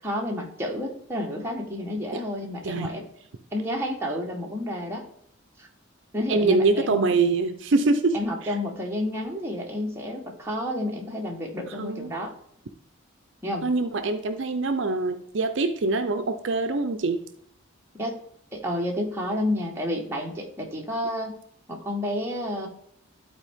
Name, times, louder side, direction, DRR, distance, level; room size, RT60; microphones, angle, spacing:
voice 1, 0.0-3.0 3.5-5.0 5.6-5.7 6.1-7.1 8.1-12.3 13.4-13.7 18.0-18.2 18.5-21.3 21.7-22.7, left 1 dB, 10° right, -1 dB, 1.2 m, -30 dB
voice 2, 6.3-8.5 11.7-12.1 13.6-17.2, right 3 dB, 60° right, 8 dB, 0.5 m, -24 dB
11.5 x 4.3 x 3.5 m, 0.71 s
head